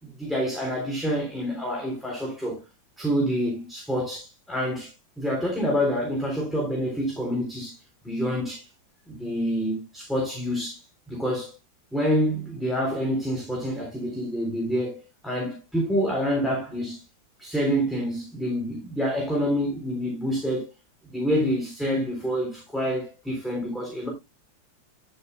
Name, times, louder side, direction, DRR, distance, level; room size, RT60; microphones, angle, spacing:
voice 1, 0.0-2.6 3.0-7.8 8.0-8.7 9.1-11.5 11.9-17.0 17.4-20.7 21.0-24.1, equal, ahead, 3.4 m, -27 dB
11.0 x 8.6 x 2.2 m
omnidirectional pair, 2.1 m